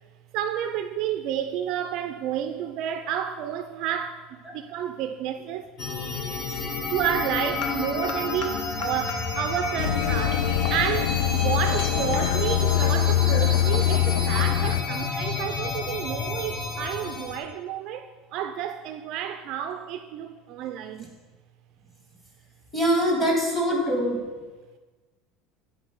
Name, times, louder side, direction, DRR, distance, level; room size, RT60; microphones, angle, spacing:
voice 1, 0.3-5.7 6.9-21.1, right 10 dB, 45° right, 0.3 m, -30 dB
sound 1, 5.8-17.4, left 3 dB, 35° left, 1.0 m, -30 dB
sound 2, 7.4-8.5 8.8-9.1 9.6-15.6, left 6 dB, 60° left, 0.9 m, -41 dB
sound 3, 9.8-14.8, left 11 dB, 85° left, 0.3 m, -23 dB
voice 2, 22.7-24.2, equal, 10° left, 1.6 m, -23 dB
9.0 x 3.7 x 5.3 m
cardioid pair, 170°, 0 cm